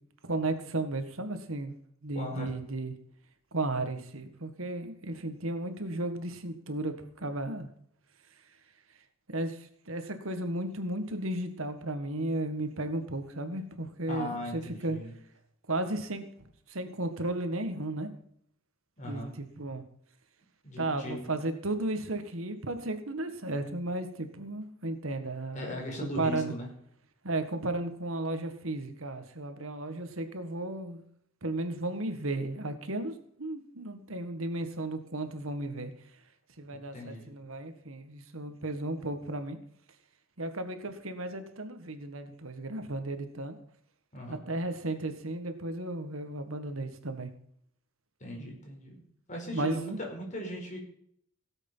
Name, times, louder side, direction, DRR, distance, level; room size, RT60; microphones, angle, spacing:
voice 1, 0.2-1.7 2.0-2.9 3.5-7.7 9.3-15.0 15.7-16.2 16.7-18.1 19.0-19.8 20.8-26.5 27.2-31.0 31.4-35.9 36.6-39.6 40.4-43.6 44.3-47.3 49.5-50.0, right 2 dB, 70° right, 8 dB, 1.8 m, -34 dB
voice 2, 2.1-2.5 14.1-15.1 19.0-19.3 20.6-21.3 25.5-26.7 36.7-37.3 44.1-44.4 48.2-49.0 49.3-50.8, left 1 dB, 35° left, 0 dB, 5.2 m, -38 dB
17.5 x 8.2 x 5.7 m, 0.67 s
head